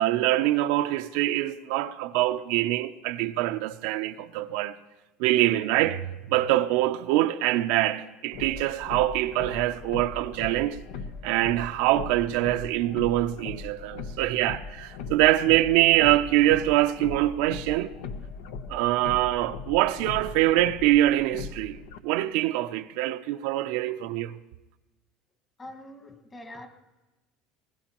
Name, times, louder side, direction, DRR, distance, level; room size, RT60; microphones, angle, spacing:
voice 1, 0.0-4.8 5.2-10.8 11.2-17.9 18.7-24.3, right 15 dB, 75° right, 0.5 m, -24 dB
sound 1, 8.3-22.0, left 5 dB, 85° left, 0.8 m, -39 dB
voice 2, 25.6-26.7, left 1 dB, 20° left, 1.6 m, -43 dB
20.5 x 20.5 x 3.0 m
cardioid pair, 135°, 0 cm